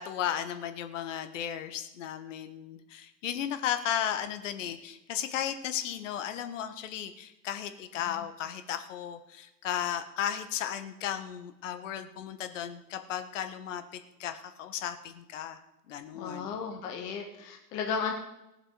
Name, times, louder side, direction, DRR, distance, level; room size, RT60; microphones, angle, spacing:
voice 1, 0.0-15.6 15.9-16.5, left 10 dB, 50° left, 9 dB, 1.4 m, -35 dB
voice 2, 16.1-18.1, left 6 dB, 10° left, 3 dB, 0.4 m, -34 dB
18.5 x 7.4 x 5.0 m, 0.91 s
figure-of-eight pair, 105°, 48 cm